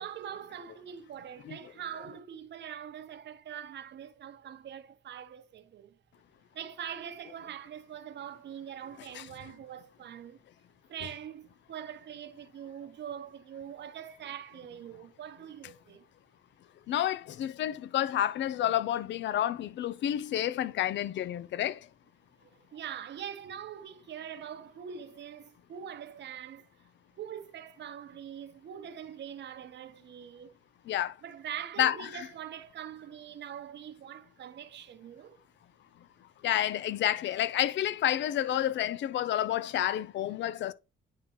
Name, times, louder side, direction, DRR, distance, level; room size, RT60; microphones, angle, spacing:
voice 1, 0.0-6.0 6.5-10.4 10.9-16.0 22.4-26.7 27.2-30.5 31.2-35.4, right 9 dB, 65° right, 0.9 m, -43 dB
voice 2, 16.9-21.8 30.9-31.1 31.8-32.3 36.4-40.7, left 11 dB, 65° left, 0.5 m, -30 dB
9.7 x 3.7 x 3.0 m
cardioid pair, 90°, 20 cm